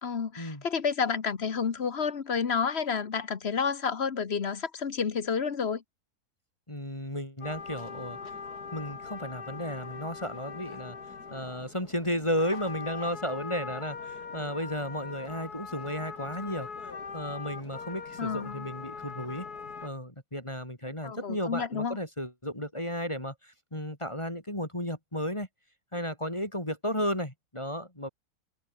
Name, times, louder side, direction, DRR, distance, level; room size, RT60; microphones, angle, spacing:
voice 1, 0.0-5.8 18.2-18.7 21.0-22.0, left 6 dB, 45° left, 1.3 m, -30 dB
voice 2, 6.7-8.2 8.7-11.0 11.3-16.7 17.1-19.5 19.8-25.5 25.9-28.1, equal, 20° left, 4.7 m, -34 dB
sound 1, 7.4-19.9, left 5 dB, 75° left, 3.0 m, -41 dB
omnidirectional pair, 1.7 m